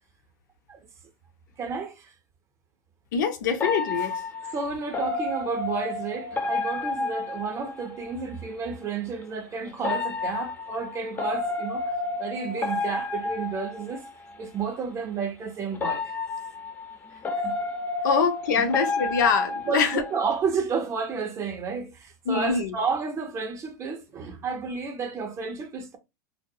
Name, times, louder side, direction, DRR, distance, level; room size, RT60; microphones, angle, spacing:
voice 1, 1.6-2.1 4.5-11.9 12.2-14.1 14.4-16.1 17.3-17.6 18.5-18.7 19.7-26.0, right 5 dB, 30° right, 0.6 m, -31 dB
voice 2, 3.1-4.2 18.0-20.0 22.3-22.7, left 6 dB, 80° left, 0.6 m, -24 dB
sound 1, 3.6-8.2 9.8-14.4 15.7-20.4, left 3 dB, 20° left, 0.5 m, -31 dB
2.3 x 2.0 x 2.7 m
hypercardioid pair, 115°, 10 cm